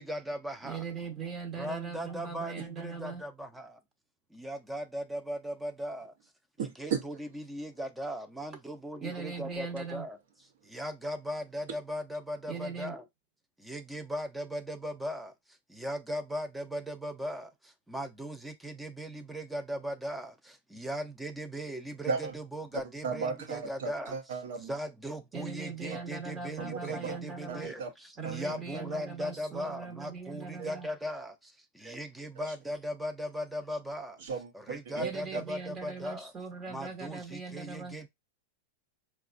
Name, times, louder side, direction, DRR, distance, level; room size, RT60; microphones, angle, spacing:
voice 1, 0.0-0.8 1.6-3.8 4.3-6.1 6.6-10.2 10.6-13.0 13.6-15.3 15.7-24.2 24.6-34.2 34.5-36.3 36.7-38.1, equal, 5° right, 0.6 m, -38 dB
voice 2, 0.6-3.2 9.0-10.1 12.5-12.9 25.3-27.7 28.2-30.9 34.9-38.0, right 5 dB, 30° right, 0.8 m, -40 dB
voice 3, 6.6-7.0 22.1-22.3 23.0-24.7 25.8-26.0 26.6-27.2 27.5-27.9 28.2-28.6 28.9-29.0 30.6-30.7 32.4-32.5 34.2-35.1, right 5 dB, 75° right, 0.9 m, -35 dB
3.9 x 2.3 x 2.5 m
hypercardioid pair, 120°, 0 cm